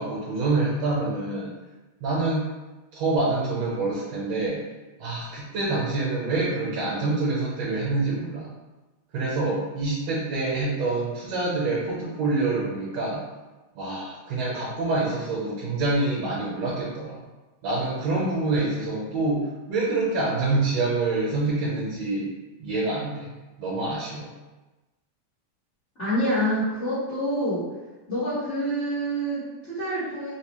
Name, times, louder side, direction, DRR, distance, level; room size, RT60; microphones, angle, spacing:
voice 1, 0.0-1.5 2.0-2.5 2.9-4.6 5.0-8.5 9.1-13.2 13.8-17.2 17.6-22.3 22.6-23.3 23.6-24.3, right 2 dB, 70° right, -6 dB, 1.8 m, -26 dB
voice 2, 26.0-27.6 28.1-30.3, equal, 80° left, -13 dB, 0.6 m, -27 dB
4.7 x 2.0 x 2.9 m, 1.1 s
omnidirectional pair, 3.3 m